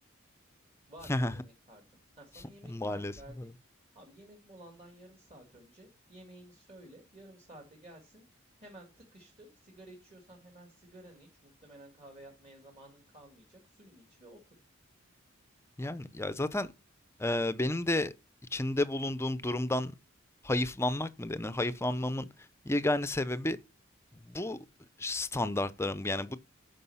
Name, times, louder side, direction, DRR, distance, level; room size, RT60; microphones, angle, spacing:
voice 1, 0.9-3.3 3.9-8.3 8.6-14.6, right 1 dB, 30° right, 1.9 m, -53 dB
voice 2, 2.7-3.1 3.4-3.5 15.8-16.7 17.2-18.1 18.5-19.9 20.4-22.3 22.7-23.6 24.3-24.6 25.0-26.4, left 1 dB, 10° left, 0.5 m, -31 dB
9.7 x 5.4 x 5.5 m
head